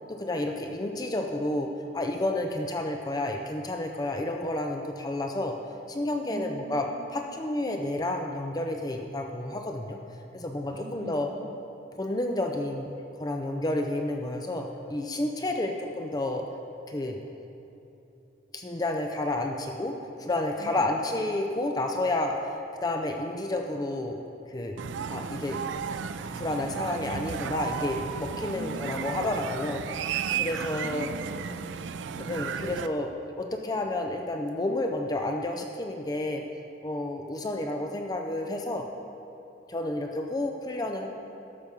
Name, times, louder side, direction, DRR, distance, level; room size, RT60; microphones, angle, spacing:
voice 1, 0.1-5.6 5.9-6.9 7.1-10.0 10.3-11.3 12.0-12.9 13.2-16.5 16.9-17.2 18.5-24.2 24.5-24.8 25.1-25.6 26.4-29.8 30.4-31.1 32.2-33.1 33.4-36.4 36.8-38.9 39.7-41.1, left 1 dB, 20° left, 3 dB, 0.5 m, -30 dB
voice 2, 6.3-7.2 10.7-11.6 20.6-21.6 28.5-29.8 30.3-31.9, equal, 60° right, -1 dB, 1.7 m, -43 dB
sound 1, 24.8-32.9, right 7 dB, 85° right, 0.4 m, -34 dB
12.0 x 7.0 x 5.3 m, 2.9 s
head